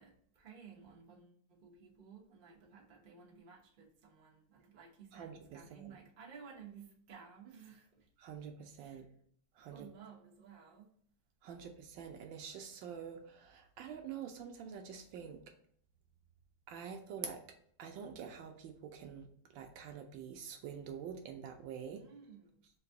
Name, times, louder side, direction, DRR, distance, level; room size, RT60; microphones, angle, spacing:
voice 1, 0.0-8.1 8.8-9.0 9.7-11.0 21.9-22.6, right 6 dB, 90° right, 0.4 m, -56 dB
voice 2, 5.1-6.0 8.2-9.1 9.5-9.9 11.4-15.4 16.7-17.4 17.8-22.0, right 7 dB, 75° right, 1.1 m, -46 dB
3.9 x 2.6 x 3.6 m
omnidirectional pair, 2.4 m